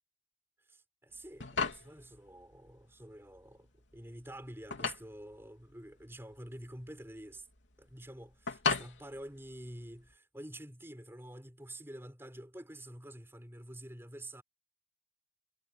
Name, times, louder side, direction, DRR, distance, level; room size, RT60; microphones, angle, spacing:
voice 1, 0.7-3.7 3.9-7.5 7.8-14.4, right 1 dB, 15° right, 5.4 m, -48 dB
sound 1, 1.1-10.1, left 4 dB, 80° left, 3.4 m, -39 dB
head